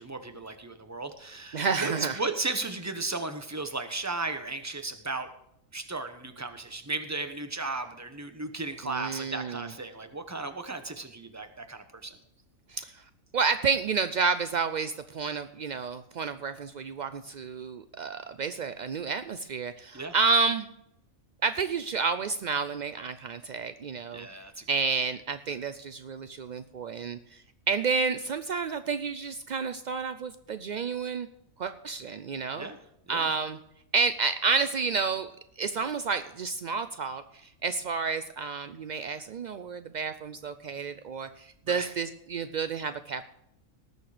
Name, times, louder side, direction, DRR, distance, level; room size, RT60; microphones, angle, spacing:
voice 1, 0.0-5.3 5.7-12.2 19.9-20.1 24.1-24.7 32.6-32.8 33.1-33.3 41.7-41.9, right 3 dB, 15° right, 8 dB, 0.9 m, -35 dB
voice 2, 1.5-2.2 8.8-9.7 12.7-13.0 13.3-20.7 21.4-24.3 24.7-27.2 27.7-31.3 31.6-32.7 33.1-33.6 33.9-35.3 35.6-43.2, right 5 dB, 70° right, 11 dB, 0.4 m, -30 dB
18.5 x 6.8 x 5.0 m, 0.79 s
omnidirectional pair, 1.4 m